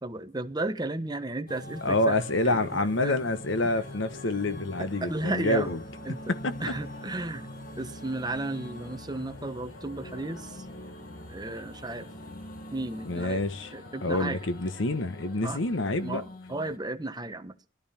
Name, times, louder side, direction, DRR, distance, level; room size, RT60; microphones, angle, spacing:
voice 1, 0.0-2.2 2.4-3.2 3.6-3.8 4.8-5.7 6.0-6.3 6.6-10.7 11.3-12.1 12.7-13.4 13.7-14.4 15.4-15.6 16.0-17.5, right 2 dB, 20° right, 1.1 m, -34 dB
sound 1, 1.5-16.8, left 1 dB, 45° left, 1.5 m, -44 dB
voice 2, 1.8-5.8 6.4-6.5 13.0-13.7 14.0-16.2, left 2 dB, 70° left, 1.2 m, -27 dB
sound 2, 3.3-16.2, left 1 dB, 90° left, 4.2 m, -52 dB
19.5 x 12.5 x 4.3 m
head